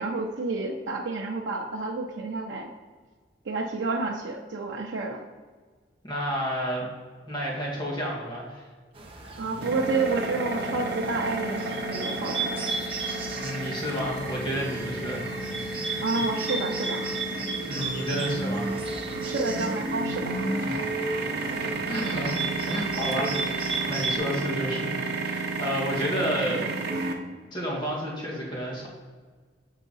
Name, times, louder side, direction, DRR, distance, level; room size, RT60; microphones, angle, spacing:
voice 1, 0.0-2.7 3.4-5.2 9.4-12.5 16.0-17.2 19.2-20.4, right 3 dB, 90° right, 0 dB, 0.6 m, -30 dB
voice 2, 6.0-6.9 7.2-8.7 13.3-15.3 17.7-18.7 20.7-20.8 21.9-22.4 22.7-26.6 27.5-28.9, equal, 25° left, -4 dB, 1.9 m, -31 dB
Bird, 8.9-24.2, right 3 dB, 30° right, 0.8 m, -36 dB
sound 1, 9.6-27.1, right 2 dB, 60° right, 0.9 m, -31 dB
sound 2, 14.0-19.0, equal, 85° left, 1.6 m, -43 dB
7.2 x 4.6 x 4.0 m, 1.5 s
head